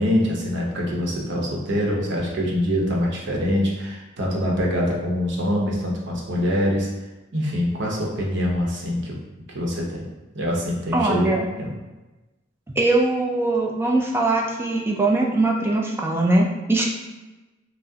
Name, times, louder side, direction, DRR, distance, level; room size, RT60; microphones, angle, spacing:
voice 1, 0.0-6.9 7.3-9.2 9.5-10.1 10.3-11.7, equal, 65° right, -2 dB, 0.9 m, -24 dB
voice 2, 10.9-11.5 12.8-16.8, right 2 dB, 10° right, -1 dB, 0.4 m, -21 dB
5.8 x 2.1 x 2.7 m, 1.1 s
head